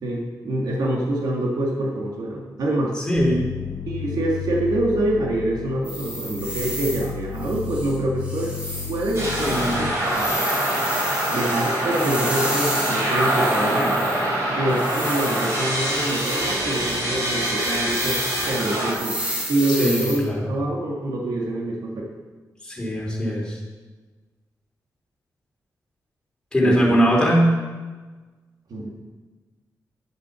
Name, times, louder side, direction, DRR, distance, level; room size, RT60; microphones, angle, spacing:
voice 1, 0.0-2.9 3.9-8.5 8.9-10.3 11.3-14.0 14.6-18.2 18.5-19.2 19.5-22.1 26.6-27.0 28.7-28.9, right 1 dB, 75° right, -2 dB, 2.1 m, -25 dB
voice 2, 3.0-3.5 9.4-9.8 19.8-20.5 22.6-23.6 26.5-27.5, equal, 10° left, -3 dB, 3.4 m, -21 dB
sound 1, 3.1-9.9, left 9 dB, 80° left, 1.0 m, -33 dB
sound 2, 5.8-7.1 7.4-14.4 14.7-20.2, equal, 20° right, 2.4 m, -32 dB
sound 3, 9.1-18.9, right 1 dB, 45° right, 4.7 m, -24 dB
11.0 x 8.0 x 6.9 m, 1.3 s
wide cardioid pair, 165°, 7 cm